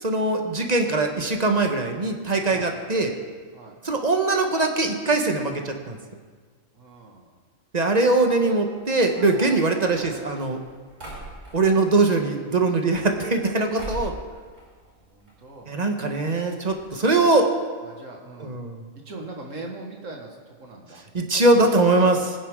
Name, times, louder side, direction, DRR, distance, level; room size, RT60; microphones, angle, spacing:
voice 1, 0.0-3.1 3.8-6.0 7.7-10.6 11.5-14.1 15.7-17.5 18.4-18.8 21.1-22.3, right 2 dB, 35° right, 4 dB, 1.2 m, -21 dB
voice 2, 6.7-7.3 14.8-15.7 17.8-18.6 19.1-21.0 21.5-21.7, right 2 dB, 90° right, 0 dB, 2.2 m, -40 dB
sound 1, 8.9-11.9 12.7-13.5 13.8-14.2 14.5-15.3 15.6-15.7 15.9-16.0 16.7-16.8 17.1-17.3, right 1 dB, 70° right, 5.3 m, -39 dB
21.5 x 9.4 x 3.6 m, 1.5 s
omnidirectional pair, 1.3 m